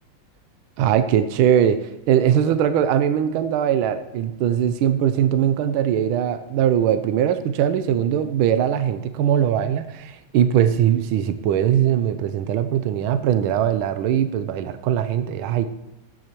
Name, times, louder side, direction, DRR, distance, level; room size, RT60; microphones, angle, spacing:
voice 1, 0.8-15.7, right 10 dB, 80° right, 11 dB, 1.5 m, -21 dB
15.5 x 10.0 x 3.0 m, 0.96 s
omnidirectional pair, 2.2 m